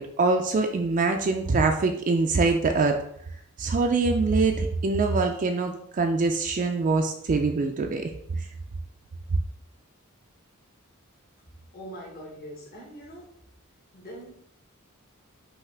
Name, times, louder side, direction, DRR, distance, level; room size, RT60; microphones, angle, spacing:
voice 1, 0.0-3.0 3.6-8.5, right 3 dB, 40° right, 4 dB, 0.4 m, -24 dB
voice 2, 11.4-13.3 13.9-14.3, equal, 45° left, -4 dB, 1.2 m, -43 dB
5.6 x 2.8 x 3.4 m, 0.71 s
head